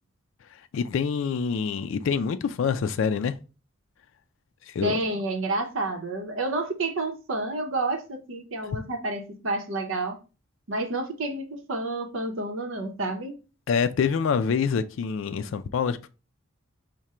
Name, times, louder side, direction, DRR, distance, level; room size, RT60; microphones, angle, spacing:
voice 1, 0.7-3.3 4.7-5.0 13.7-16.1, left 6 dB, 65° left, 0.3 m, -26 dB
voice 2, 4.8-10.2 10.7-13.3, right 2 dB, 70° right, 0.8 m, -29 dB
4.8 x 2.2 x 4.2 m
head